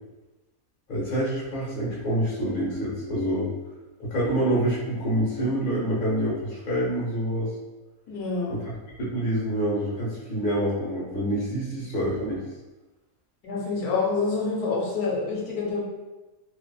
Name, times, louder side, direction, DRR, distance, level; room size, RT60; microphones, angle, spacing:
voice 1, 0.9-3.5 4.0-7.5 8.5-12.4, right 1 dB, 40° left, -6 dB, 0.8 m, -27 dB
voice 2, 8.1-8.5 13.4-15.8, left 4 dB, 80° left, -3 dB, 1.1 m, -27 dB
2.6 x 2.6 x 2.3 m, 1.1 s
omnidirectional pair, 1.6 m